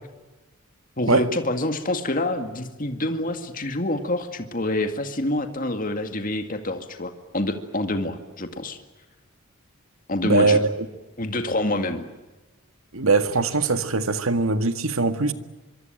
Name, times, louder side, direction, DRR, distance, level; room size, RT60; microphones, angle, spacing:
voice 1, 1.0-8.8 10.1-10.6 11.2-12.1, left 1 dB, 40° left, 7 dB, 2.1 m, -27 dB
voice 2, 10.2-10.7 12.9-15.3, right 3 dB, 85° right, 10 dB, 1.9 m, -21 dB
25.0 x 24.5 x 9.1 m, 1.1 s
head